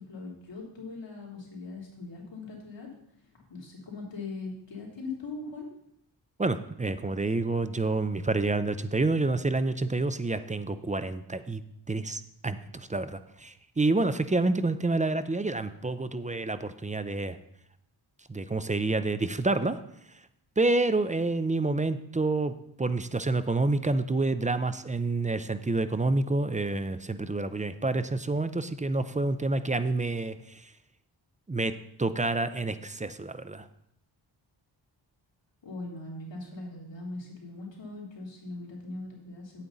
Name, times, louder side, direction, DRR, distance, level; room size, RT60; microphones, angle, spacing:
voice 1, 0.0-2.9 3.5-5.7 35.6-39.6, left 3 dB, 65° left, -3 dB, 3.2 m, -40 dB
voice 2, 6.4-11.6 11.9-17.4 18.3-19.8 20.6-30.7 31.5-31.7 32.0-33.7, right 2 dB, 15° right, 11 dB, 0.5 m, -28 dB
8.6 x 8.5 x 4.0 m, 0.74 s
wide cardioid pair, 70°, 48 cm